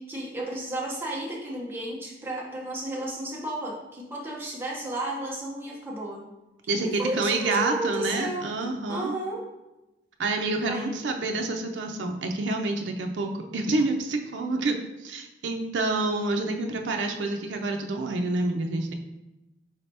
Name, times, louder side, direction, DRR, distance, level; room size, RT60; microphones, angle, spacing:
voice 1, 0.0-6.2 6.8-8.5 8.9-9.4 10.6-11.3, right 1 dB, 10° right, -3 dB, 0.7 m, -33 dB
voice 2, 6.7-9.1 10.2-18.9, right 2 dB, 85° right, 3 dB, 0.4 m, -28 dB
4.2 x 2.8 x 3.3 m, 0.99 s
head